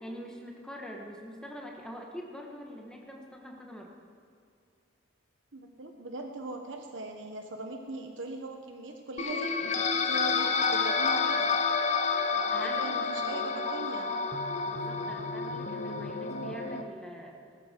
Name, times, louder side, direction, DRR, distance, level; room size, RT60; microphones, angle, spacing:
voice 1, 0.0-3.9 12.5-13.7 14.0-14.2 14.7-17.4, equal, 5° left, 0 dB, 1.6 m, -44 dB
voice 2, 5.5-11.5 12.3-14.1, right 2 dB, 80° right, 3 dB, 1.2 m, -40 dB
sound 1, 9.2-16.8, left 5 dB, 35° left, 0.8 m, -29 dB
19.5 x 12.5 x 4.6 m, 2.4 s
head